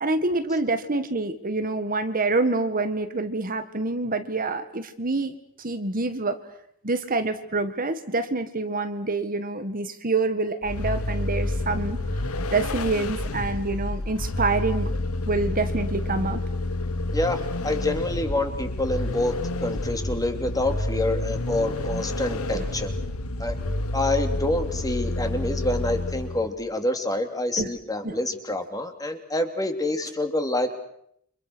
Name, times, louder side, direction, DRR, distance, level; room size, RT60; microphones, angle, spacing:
voice 1, 0.0-6.4 6.8-12.0 12.5-14.9 15.3-16.4 22.5-22.7 27.6-27.7 28.0-28.2, right 3 dB, 40° right, 9 dB, 1.8 m, -26 dB
Vehicle, 10.6-26.6, left 2 dB, 80° left, 1.5 m, -29 dB
voice 2, 17.1-19.3 19.6-22.9 23.4-23.6 23.9-30.8, left 1 dB, 15° left, 5 dB, 3.2 m, -27 dB
29.5 x 26.5 x 6.3 m, 0.71 s
head